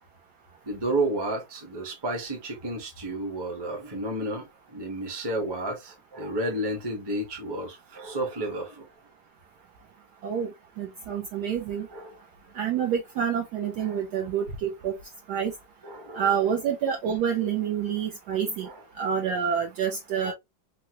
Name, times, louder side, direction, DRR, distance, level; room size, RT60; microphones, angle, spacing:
voice 1, 0.7-4.5 4.7-8.9 11.9-12.2 13.8-14.0 15.8-16.3 18.6-18.8 20.2-20.3, right 1 dB, 25° right, 0.5 m, -31 dB
voice 2, 10.8-11.9 12.6-14.9 15.3-15.5 16.2-18.7 19.0-20.3, right 8 dB, 75° right, 0.9 m, -27 dB
3.7 x 2.1 x 2.8 m
omnidirectional pair, 2.1 m